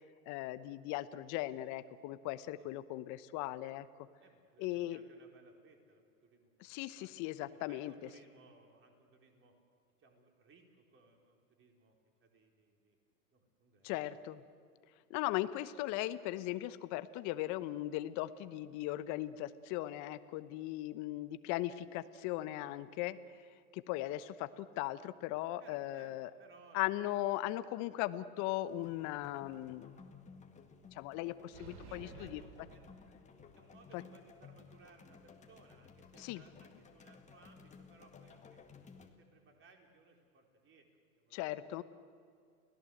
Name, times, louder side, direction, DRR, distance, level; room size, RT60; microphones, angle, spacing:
voice 1, 0.3-3.9 4.6-5.0 6.6-7.9 13.8-14.4 15.1-23.2 23.7-26.3 26.7-30.0 30.9-32.4 36.2-36.4 41.3-41.8, left 15 dB, 40° left, 13 dB, 1.0 m, -38 dB
voice 2, 4.2-7.1 7.7-9.5 10.0-11.9 12.2-13.0 13.3-13.9 25.6-26.9 31.8-32.9 33.5-40.9 41.1-41.8, right 3 dB, 25° right, 2 dB, 4.5 m, -63 dB
sound 1, 28.6-39.1, left 5 dB, 15° left, 1.9 m, -57 dB
sound 2, 31.5-33.7, right 4 dB, 65° right, 3.5 m, -54 dB
29.5 x 17.5 x 7.9 m, 2.3 s
hypercardioid pair, 110°, 46 cm